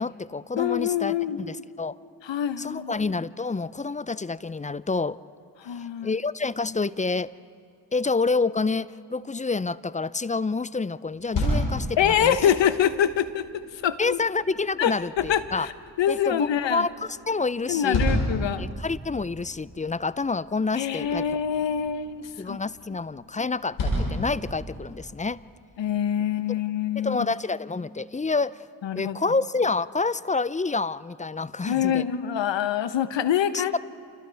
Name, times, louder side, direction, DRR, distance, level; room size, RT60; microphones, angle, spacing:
voice 1, 0.0-2.0 2.6-5.2 5.7-7.3 7.9-12.4 14.0-15.7 16.1-18.0 18.6-21.3 22.4-25.4 27.0-28.7 28.9-32.0 33.5-33.8, left 3 dB, 15° left, 18 dB, 0.5 m, -28 dB
voice 2, 0.6-1.5 2.2-2.9 5.6-6.2 12.0-13.5 13.8-14.2 14.8-15.7 16.0-16.9 17.7-18.6 20.7-22.6 25.8-27.3 28.8-29.2 31.7-33.8, left 9 dB, 70° left, 12 dB, 1.1 m, -25 dB
sound 1, 11.0-25.0, equal, 90° left, 7.3 m, -33 dB
29.0 x 28.5 x 3.5 m, 2.4 s
supercardioid pair, 45°, 46 cm